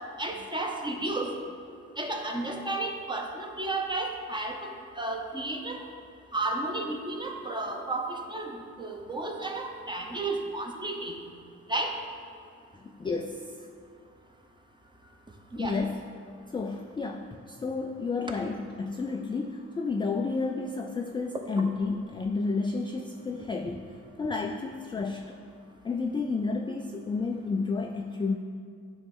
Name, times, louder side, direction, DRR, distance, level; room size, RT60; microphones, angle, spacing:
voice 1, 0.2-1.3 2.0-4.7 5.0-5.8 6.3-8.5 8.8-11.2 11.7-11.9 15.5-15.8, right 2 dB, 15° right, 2 dB, 0.9 m, -32 dB
voice 2, 12.7-13.5 15.6-16.1 16.5-25.4 25.8-28.4, left 4 dB, 15° left, 4 dB, 0.3 m, -31 dB
9.3 x 3.1 x 5.3 m, 2.3 s
cardioid pair, 90°, 30 cm